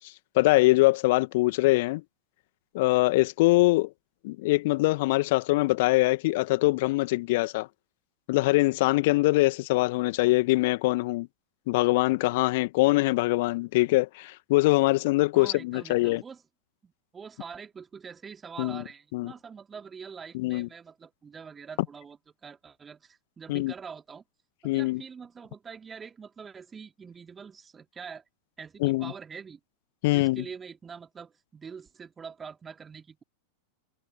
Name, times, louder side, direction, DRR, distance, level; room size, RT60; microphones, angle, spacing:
voice 1, 0.4-2.0 2.7-3.9 4.2-7.7 8.3-11.3 11.7-16.2 18.6-18.8 19.1-19.3 20.3-20.7 23.5-23.7 24.6-25.0 28.8-29.1 30.0-30.4, left 21 dB, 50° left, 1.9 m, -23 dB
voice 2, 15.3-16.4 16.8-22.2 22.4-24.2 24.7-28.2 28.6-29.6 30.1-33.2, right 6 dB, 20° right, 3.1 m, -44 dB
figure-of-eight pair, 90°, 0 cm